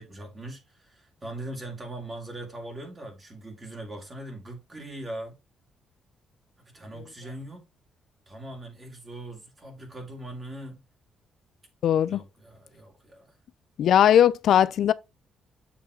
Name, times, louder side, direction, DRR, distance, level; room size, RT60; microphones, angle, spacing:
voice 1, 0.0-5.4 6.7-7.7 8.3-10.8 12.1-13.4, right 1 dB, 30° right, 2.4 m, -40 dB
voice 2, 11.8-12.2 13.8-14.9, left 10 dB, 70° left, 0.5 m, -19 dB
7.3 x 3.5 x 4.6 m
cardioid pair, 90°, 0 cm